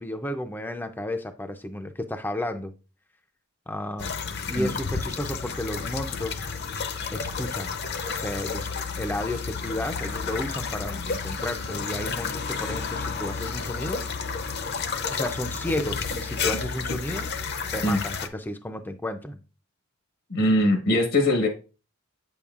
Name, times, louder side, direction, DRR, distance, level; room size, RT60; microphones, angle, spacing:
voice 1, 0.0-2.7 3.7-4.2 4.5-6.5 7.1-7.7 8.1-8.7 9.0-14.0 15.1-17.3 17.7-19.4, left 1 dB, 10° left, 6 dB, 0.4 m, -32 dB
sound 1, 4.0-18.3, left 5 dB, 50° left, 0.6 m, -31 dB
voice 2, 20.3-21.5, left 1 dB, 75° left, 4 dB, 1.1 m, -21 dB
8.3 x 6.9 x 2.4 m, 0.33 s
head